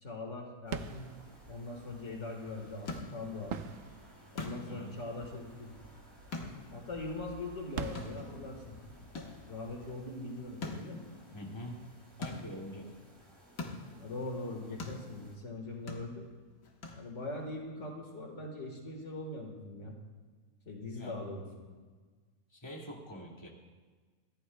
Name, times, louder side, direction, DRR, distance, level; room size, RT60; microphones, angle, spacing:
voice 1, 0.0-1.1 1.5-3.5 4.3-5.7 6.7-8.7 9.5-11.0 14.0-16.3 16.9-20.0 20.7-21.4, left 2 dB, 55° left, 1 dB, 1.9 m, -41 dB
sound 1, 0.6-11.2, right 6 dB, 60° right, 0.9 m, -47 dB
sound 2, 0.7-15.4, right 1 dB, 20° right, 2.8 m, -60 dB
sound 3, 2.4-17.5, left 3 dB, 75° left, 1.8 m, -47 dB
voice 2, 11.3-11.8 12.2-12.9 21.0-21.1 22.5-23.5, equal, 20° left, -3 dB, 2.2 m, -44 dB
23.0 x 15.0 x 2.2 m, 1.4 s
omnidirectional pair, 1.5 m